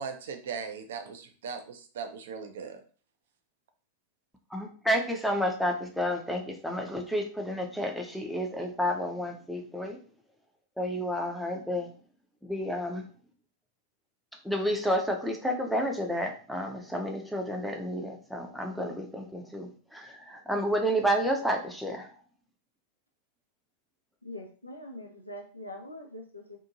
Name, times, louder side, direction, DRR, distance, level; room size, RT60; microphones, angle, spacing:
voice 1, 0.0-2.8, right 6 dB, 60° right, 7 dB, 0.5 m, -38 dB
voice 2, 4.5-10.0 10.8-11.9 12.4-13.0 14.4-22.1, equal, ahead, 2 dB, 0.6 m, -30 dB
voice 3, 24.2-26.6, left 1 dB, 85° left, 1 dB, 0.5 m, -43 dB
2.7 x 2.5 x 2.5 m, 0.41 s
figure-of-eight pair, 90°, 0 cm